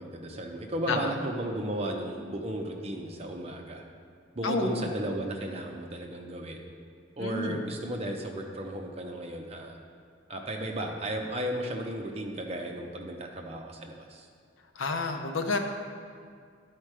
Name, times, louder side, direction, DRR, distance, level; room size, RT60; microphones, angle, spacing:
voice 1, 0.0-3.8 4.3-6.6 7.2-9.8 10.3-14.3, right 1 dB, 35° right, 1 dB, 0.8 m, -34 dB
voice 2, 4.4-4.9 7.2-7.6 14.8-15.6, left 3 dB, 90° left, 4 dB, 0.7 m, -30 dB
10.5 x 4.5 x 4.8 m, 2.1 s
head